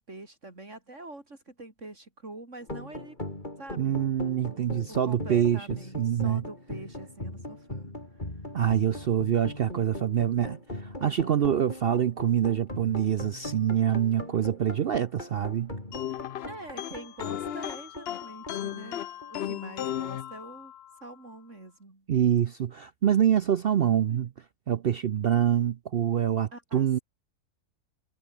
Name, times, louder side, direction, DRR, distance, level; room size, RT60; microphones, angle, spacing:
voice 1, 0.0-3.2 3.6-4.0 4.9-8.3 14.1-14.3 16.1-19.0 19.3-20.7 21.0-22.1 24.1-24.3 26.5-27.0, right 2 dB, 45° right, 4.4 m, -45 dB
sound 1, 2.6-19.5, left 1 dB, 30° left, 5.4 m, -40 dB
voice 2, 3.8-5.7 5.9-6.4 8.5-15.7 22.1-24.3 24.7-27.0, right 9 dB, 65° right, 0.5 m, -25 dB
sound 2, 15.9-21.0, left 11 dB, 65° left, 0.6 m, -36 dB
omnidirectional pair, 1.7 m